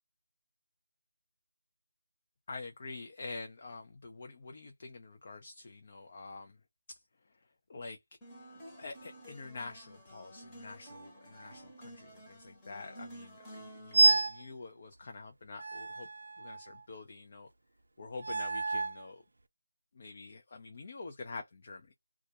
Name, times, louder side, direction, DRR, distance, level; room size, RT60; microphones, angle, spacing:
voice 1, 2.5-6.6 6.9-7.0 7.7-8.0 8.8-16.1 16.4-17.5 18.0-19.2 19.9-21.9, left 3 dB, 40° left, 0.4 m, -46 dB
sound 1, 8.2-14.1, right 1 dB, 10° left, 0.8 m, -51 dB
sound 2, 13.9-14.4 15.6-16.8 18.2-19.1, right 3 dB, 60° right, 0.4 m, -29 dB
2.3 x 2.1 x 2.8 m
figure-of-eight pair, 165°, 0 cm